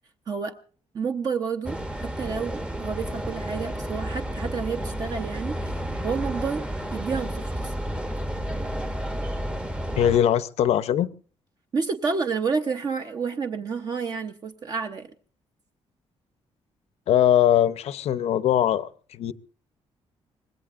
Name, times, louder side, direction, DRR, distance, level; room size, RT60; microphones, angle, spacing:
voice 1, 0.9-5.6 6.0-7.7 11.7-15.1, right 5 dB, 35° right, 0.8 m, -30 dB
sound 1, 1.6-10.2, equal, 10° right, 0.9 m, -31 dB
voice 2, 10.0-11.1 17.1-19.3, left 10 dB, 70° left, 0.8 m, -21 dB
25.0 x 20.0 x 2.5 m
cardioid pair, 170°, 11 cm